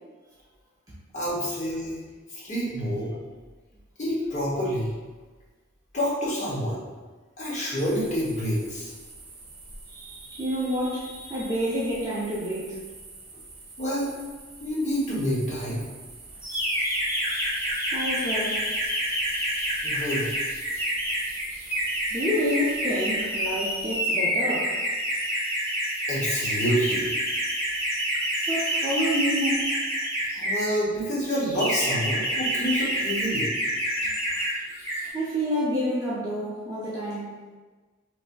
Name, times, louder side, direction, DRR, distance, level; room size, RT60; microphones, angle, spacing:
voice 1, 1.1-2.0 2.3-3.1 4.0-4.9 5.9-6.8 7.4-8.9 13.8-14.1 14.6-15.8 19.8-20.2 26.1-27.1 30.3-33.5, equal, 35° left, -6 dB, 0.8 m, -27 dB
sound 1, 7.8-24.0, right 3 dB, 55° right, 0.7 m, -46 dB
voice 2, 9.9-12.8 17.9-18.7 22.1-24.7 28.5-29.8 34.0-34.1 35.1-37.4, equal, 20° right, -9 dB, 0.4 m, -28 dB
sound 2, 16.4-30.7 31.3-34.5 34.8-35.1, equal, 15° left, 1.2 m, -28 dB
3.1 x 2.6 x 2.2 m, 1.3 s
head